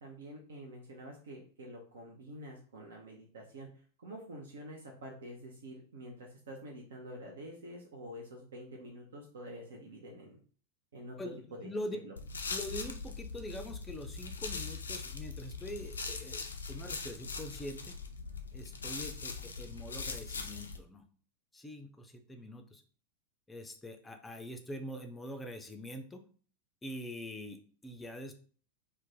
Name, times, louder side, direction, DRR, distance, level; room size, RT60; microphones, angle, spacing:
voice 1, 0.0-10.4 10.9-11.2 11.5-11.7 12.0-12.1, equal, 65° right, 0 dB, 0.5 m, -47 dB
voice 2, 11.2-12.0 12.5-18.0 18.5-21.0 21.5-22.8 23.5-26.2 26.8-28.3, left 1 dB, 10° left, 6 dB, 0.4 m, -44 dB
sound 1, 12.2-20.8, left 4 dB, 70° left, 0.3 m, -41 dB
2.5 x 2.1 x 3.8 m, 0.43 s
figure-of-eight pair, 90°, 0 cm